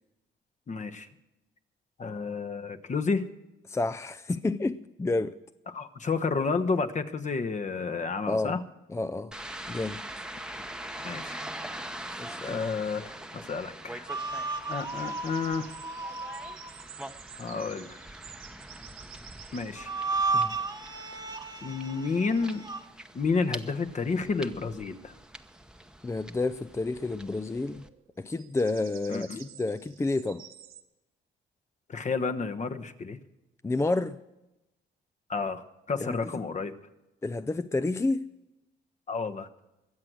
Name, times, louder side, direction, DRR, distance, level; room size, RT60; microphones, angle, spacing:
voice 1, 0.7-1.1 2.0-3.2 5.7-8.6 11.0-11.4 12.4-14.1 14.7-15.7 17.4-18.0 19.5-19.9 21.6-22.7 23.1-25.1 29.1-29.4 31.9-33.2 35.3-36.7 39.1-39.5, left 4 dB, 40° left, 1.1 m, -30 dB
voice 2, 3.7-5.3 8.3-8.6 8.9-9.3 9.7-10.0 12.2-12.6 20.3-20.5 26.0-27.8 28.2-30.4 33.6-34.2 36.0-36.3 37.2-38.3, left 2 dB, 15° left, 0.4 m, -30 dB
sound 1, 9.3-27.9, right 1 dB, 5° right, 0.9 m, -43 dB
sound 2, 13.3-13.9 14.5-20.1 21.5-21.6 21.8-21.9 24.6-24.7 26.4-26.5 26.7-26.8 27.1-30.8, right 9 dB, 80° right, 1.4 m, -51 dB
sound 3, 14.1-16.8 19.8-22.8, right 3 dB, 20° right, 1.4 m, -33 dB
22.0 x 7.8 x 6.2 m
cardioid pair, 90°, 20 cm